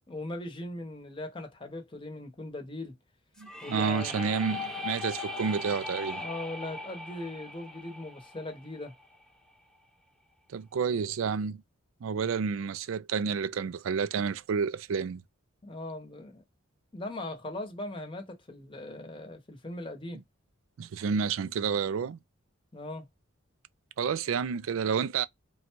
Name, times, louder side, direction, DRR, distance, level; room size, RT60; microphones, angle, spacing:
voice 1, 0.1-3.0 3.6-4.1 6.1-8.9 15.6-16.4 16.9-20.2 22.7-23.1, left 2 dB, 25° left, 0.9 m, -39 dB
sound 1, 3.4-9.2, left 2 dB, 5° left, 0.6 m, -39 dB
voice 2, 3.4-6.2 10.5-11.6 12.0-15.2 20.8-22.2 24.0-25.2, right 6 dB, 70° right, 0.4 m, -30 dB
3.8 x 2.3 x 4.4 m
head